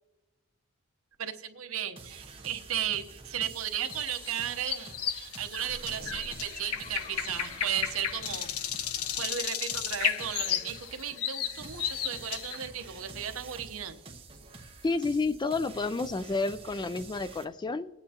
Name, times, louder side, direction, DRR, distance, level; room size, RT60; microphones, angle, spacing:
voice 1, 1.2-8.5 9.2-14.0, right 9 dB, 70° right, 8 dB, 0.9 m, -35 dB
sound 1, 2.0-17.4, right 3 dB, 25° right, 1.1 m, -48 dB
sound 2, 3.8-12.7, left 9 dB, 75° left, 0.6 m, -34 dB
sound 3, 5.4-8.7, left 1 dB, 35° left, 2.2 m, -48 dB
voice 2, 14.8-17.9, left 3 dB, 20° left, 13 dB, 0.3 m, -30 dB
20.5 x 8.8 x 2.8 m, 1.0 s
head